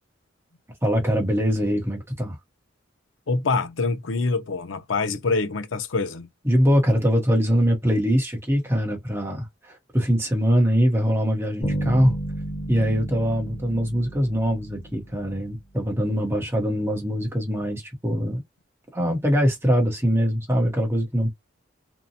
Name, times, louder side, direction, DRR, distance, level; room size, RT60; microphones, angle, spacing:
voice 1, 0.8-2.4 6.4-12.1 12.7-18.4 18.9-21.3, equal, 15° right, 0.9 m, -22 dB
voice 2, 3.3-6.3, left 3 dB, 80° left, 0.6 m, -25 dB
Bass guitar, 11.6-15.4, right 1 dB, 35° left, 1.2 m, -32 dB
2.6 x 2.1 x 2.7 m
head